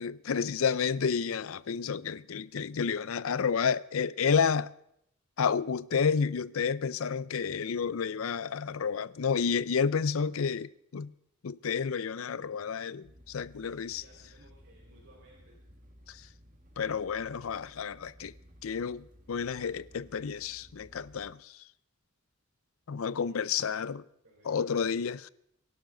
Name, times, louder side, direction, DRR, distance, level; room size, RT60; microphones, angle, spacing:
voice 1, 0.0-4.7 5.4-11.1 11.4-14.0 16.1-16.2 16.8-18.3 18.6-21.5 22.9-24.0 24.5-25.3, left 6 dB, 75° left, 0.5 m, -30 dB
sound 1, 13.0-21.3, equal, 40° right, 1.6 m, -57 dB
voice 2, 13.5-15.6 23.1-23.8 24.2-24.9, equal, 70° right, 4.7 m, -60 dB
24.5 x 12.0 x 3.9 m
head